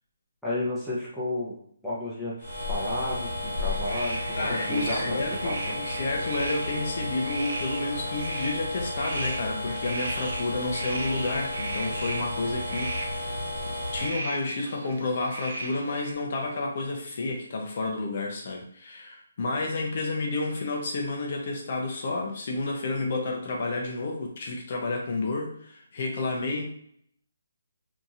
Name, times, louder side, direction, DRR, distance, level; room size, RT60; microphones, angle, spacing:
voice 1, 0.4-1.6 1.8-5.2 5.4-5.8, left 1 dB, ahead, -10 dB, 0.7 m, -32 dB
sound 1, 2.4-14.1, left 1 dB, 85° right, 1.1 m, -33 dB
sound 2, 3.4-16.1, right 2 dB, 55° right, 0.8 m, -37 dB
voice 2, 4.4-13.3 13.9-26.6, left 2 dB, 45° left, 1 dB, 0.5 m, -30 dB
2.8 x 2.6 x 2.4 m, 0.67 s
hypercardioid pair, 165°, 0 cm